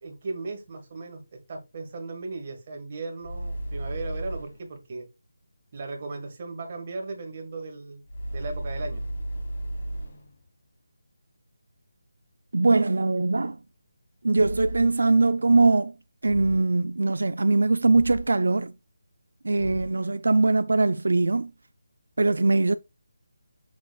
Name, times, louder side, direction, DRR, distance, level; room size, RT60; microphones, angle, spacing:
voice 1, 0.0-5.1 5.7-8.0 8.3-9.0, right 3 dB, 25° right, 1.5 m, -36 dB
sound 1, 3.2-4.7 8.1-10.4 14.3-15.2 16.2-16.9 17.9-18.6 19.6-20.1, right 1 dB, 35° left, 1.4 m, -35 dB
voice 2, 12.5-13.6 14.2-15.9 16.2-18.7 19.4-21.5 22.2-22.8, right 3 dB, 70° right, 0.4 m, -21 dB
6.9 x 6.1 x 2.3 m
figure-of-eight pair, 180°, 0 cm